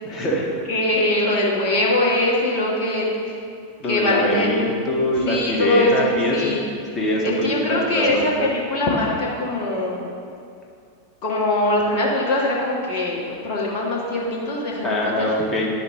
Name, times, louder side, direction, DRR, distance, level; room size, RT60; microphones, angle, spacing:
voice 1, 0.0-0.5 3.8-6.6 6.9-8.3 14.8-15.7, left 1 dB, 20° left, -3 dB, 1.6 m, -23 dB
voice 2, 0.7-3.4 3.8-4.5 5.2-6.6 7.2-10.1 11.2-15.3 15.5-15.7, left 1 dB, 45° left, -4 dB, 1.3 m, -22 dB
10.5 x 5.6 x 3.6 m, 2.4 s
figure-of-eight pair, 90°, 0 cm